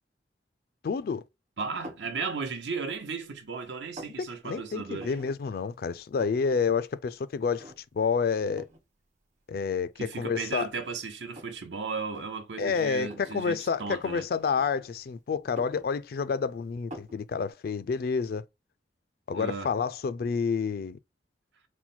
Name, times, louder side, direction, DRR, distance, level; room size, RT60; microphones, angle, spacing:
voice 1, 0.8-1.2 4.4-8.7 9.5-10.7 12.6-18.4 19.3-21.0, left 5 dB, 55° left, 0.3 m, -29 dB
voice 2, 1.6-5.1 10.0-14.2 19.3-19.7, right 4 dB, 75° right, 0.9 m, -35 dB
sound 1, 1.8-2.1 2.7-3.3 3.6-4.2 5.0-5.4 5.7-5.8 6.0-6.6 6.9-7.0 7.6-8.0 8.6-8.8 9.7-9.8 10.3-11.6 12.0-12.2 13.0-13.4 14.4-15.0 15.4-16.4 16.9-17.2, equal, 40° right, 1.1 m, -46 dB
4.3 x 2.1 x 4.2 m
head